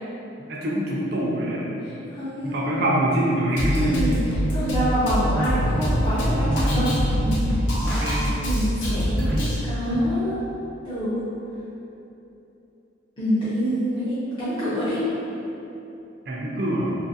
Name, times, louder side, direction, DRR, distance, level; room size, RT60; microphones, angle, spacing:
voice 1, 0.5-1.7 2.4-3.9 6.6-7.0 7.8-8.4 9.3-9.4 16.3-16.9, right 1 dB, 60° right, -4 dB, 0.5 m, -25 dB
voice 2, 1.8-2.6 3.7-8.0 8.4-10.4 10.8-11.2 13.2-15.0, equal, 25° left, -14 dB, 0.6 m, -26 dB
Drum kit, 3.6-9.6, equal, 80° left, 0.6 m, -24 dB
2.8 x 2.4 x 2.7 m, 2.9 s
head